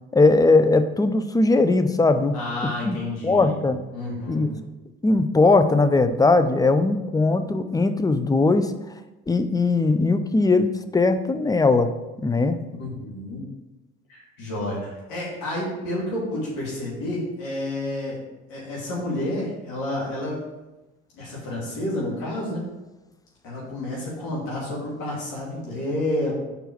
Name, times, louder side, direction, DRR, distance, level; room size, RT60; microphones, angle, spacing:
voice 1, 0.1-2.4 2.8-3.0 3.2-3.8 4.3-4.5 5.0-8.7 9.3-11.9 12.2-12.6, left 3 dB, 10° left, 9 dB, 0.6 m, -19 dB
voice 2, 2.3-3.6 3.9-4.5 12.8-13.4 14.1-18.2 18.5-20.4 21.1-22.6 23.4-26.3, left 1 dB, 70° left, -6 dB, 2.5 m, -30 dB
5.1 x 4.6 x 5.9 m, 1.0 s
hypercardioid pair, 60°, 30 cm